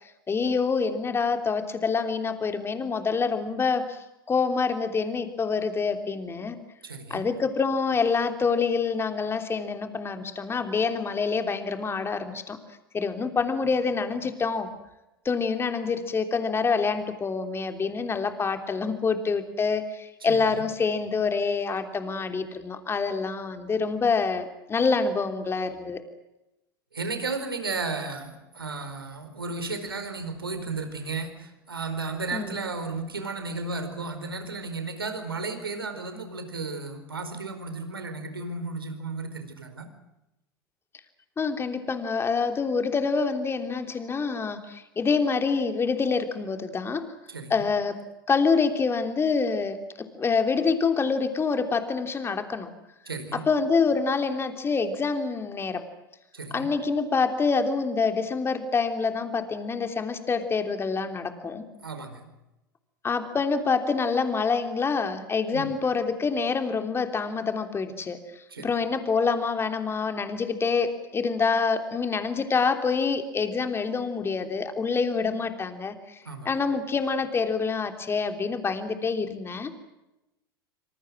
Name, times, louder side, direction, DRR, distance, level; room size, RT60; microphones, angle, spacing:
voice 1, 0.3-4.0 4.3-6.6 7.1-12.6 12.9-14.7 15.2-26.0 32.3-32.6 41.4-47.1 47.5-48.0 48.3-52.7 53.3-55.8 56.5-61.6 63.0-68.2 68.6-79.7, left 5 dB, 20° left, 6 dB, 3.3 m, -26 dB
voice 2, 6.8-7.2 20.2-20.4 26.9-39.9 47.3-47.6 53.1-53.4 56.3-56.7 61.8-62.3 65.5-65.6 68.5-68.7 76.2-76.5, right 3 dB, 85° right, 8 dB, 4.6 m, -34 dB
26.5 x 26.0 x 6.3 m, 0.93 s
figure-of-eight pair, 85°, 12 cm